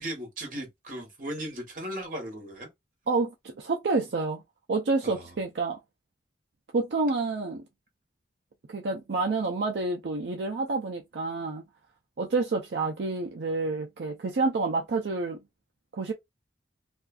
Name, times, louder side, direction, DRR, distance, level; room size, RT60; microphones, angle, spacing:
voice 1, 0.0-2.7 5.0-5.3, right 1 dB, 45° right, 1.1 m, -37 dB
voice 2, 3.1-4.4 4.7-5.8 6.7-7.6 8.7-11.6 12.2-15.4 15.9-16.1, right 3 dB, 70° right, 0.5 m, -28 dB
2.5 x 2.3 x 2.3 m
head